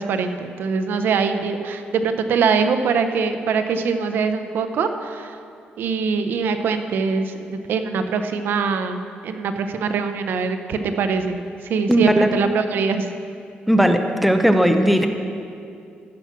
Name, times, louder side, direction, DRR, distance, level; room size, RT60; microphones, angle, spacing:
voice 1, 0.0-5.4 5.8-13.1, right 5 dB, 70° right, 8 dB, 0.7 m, -23 dB
voice 2, 11.9-12.3 13.7-15.1, right 1 dB, ahead, 6 dB, 0.6 m, -16 dB
15.0 x 5.9 x 5.9 m, 2.4 s
cardioid pair, 135°, 4 cm